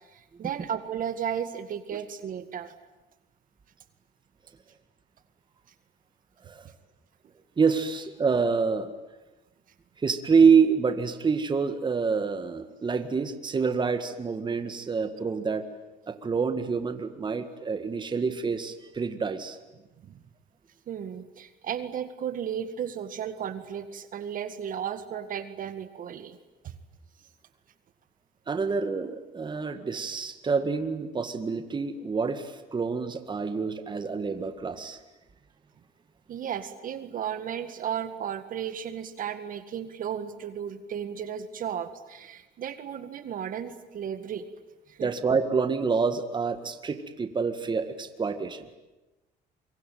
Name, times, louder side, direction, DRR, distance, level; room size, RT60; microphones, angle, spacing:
voice 1, 0.1-2.7 20.0-20.2 20.9-26.4 26.6-26.7 36.3-44.5 44.9-45.1, right 8 dB, 55° right, 11 dB, 1.9 m, -34 dB
voice 2, 7.6-8.9 10.0-15.6 16.1-19.6 28.5-35.0 45.0-48.7, right 5 dB, 25° right, 9 dB, 1.9 m, -27 dB
25.5 x 23.5 x 9.3 m, 1.1 s
cardioid pair, 110°, 17 cm